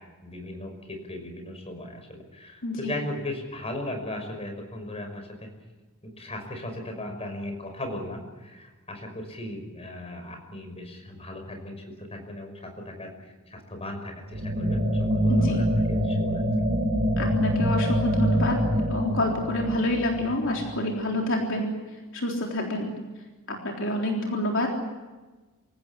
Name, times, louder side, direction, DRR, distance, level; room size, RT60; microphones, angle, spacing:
voice 1, 0.2-5.5 6.2-13.1 13.5-16.4, left 1 dB, 30° left, 4 dB, 5.6 m, -37 dB
voice 2, 2.6-2.9 15.3-15.6 17.2-21.7 22.1-22.9 23.5-24.7, left 1 dB, 60° left, 0 dB, 3.8 m, -28 dB
sound 1, 14.3-21.1, equal, 45° right, 5.5 m, -25 dB
27.5 x 16.5 x 9.8 m, 1.2 s
head